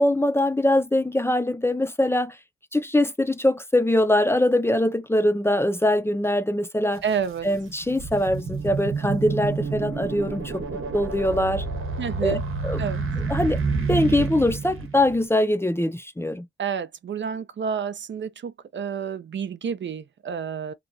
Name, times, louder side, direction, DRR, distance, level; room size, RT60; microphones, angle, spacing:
voice 1, 0.0-2.4 2.7-7.0 7.4-11.6 12.2-12.4 12.6-12.9 13.3-13.6 13.9-16.5, left 1 dB, 10° left, 0.4 m, -22 dB
voice 2, 7.0-7.5 12.0-12.4 12.8-13.0 16.6-20.7, right 7 dB, 60° right, 0.5 m, -29 dB
sound 1, 7.0-7.1 7.6-15.2, right 4 dB, 80° right, 0.9 m, -29 dB
2.9 x 2.2 x 2.5 m
wide cardioid pair, 90°, 21 cm